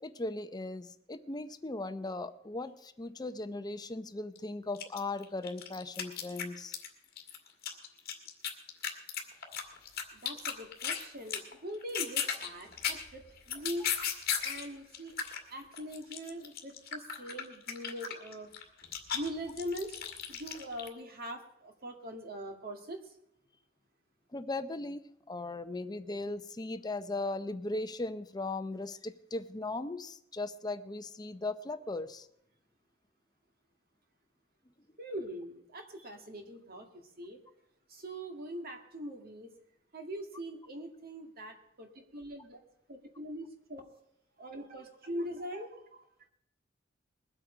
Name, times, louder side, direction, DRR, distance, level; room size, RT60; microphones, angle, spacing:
voice 1, 0.0-6.7 24.3-32.3, left 2 dB, 20° left, 10 dB, 0.6 m, -38 dB
sound 1, 4.4-4.5 4.7-6.9 7.2-11.0 11.3-11.5 11.8-14.7 14.9-20.9, left 8 dB, 50° left, 2.0 m, -36 dB
voice 2, 10.1-14.0 14.4-15.2 15.5-18.5 19.1-20.0 20.3-23.1 35.0-37.4 37.9-39.5 39.9-42.6 42.9-43.8 44.4-46.0, equal, 50° right, 4 dB, 1.9 m, -42 dB
21.0 x 8.2 x 4.9 m, 0.76 s
head